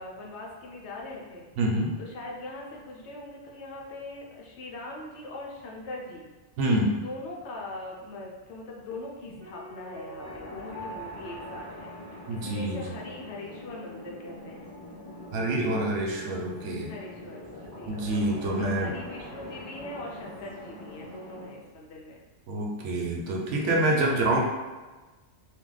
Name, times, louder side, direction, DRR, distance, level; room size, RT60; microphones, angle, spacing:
voice 1, 0.0-1.5 2.0-6.3 6.9-14.8 16.9-18.0 18.5-22.2, left 2 dB, 75° left, -2 dB, 0.9 m, -41 dB
voice 2, 1.6-1.9 6.6-7.0 12.3-12.8 15.3-16.9 17.9-18.9 22.5-24.4, right 1 dB, 80° right, -1 dB, 0.9 m, -26 dB
Piano, 9.4-13.2 13.4-13.5, right 2 dB, 55° right, 0.7 m, -45 dB
sound 1, 10.2-21.4, left 1 dB, 30° left, 0.4 m, -44 dB
2.7 x 2.1 x 3.8 m, 1.2 s
omnidirectional pair, 1.2 m